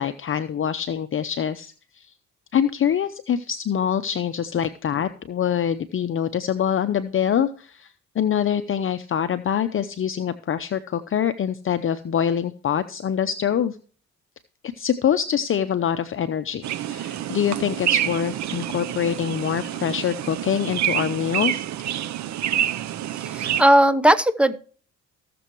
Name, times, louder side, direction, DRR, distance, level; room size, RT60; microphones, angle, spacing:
voice 1, 0.0-2.1 2.5-13.8 14.8-21.6, left 9 dB, 45° left, 10 dB, 0.7 m, -25 dB
sound 1, 16.6-23.6, right 11 dB, 65° right, 0.7 m, -27 dB
voice 2, 23.3-24.6, right 1 dB, 5° right, 13 dB, 0.9 m, -17 dB
18.5 x 6.9 x 3.0 m, 0.42 s
cardioid pair, 90°, 30 cm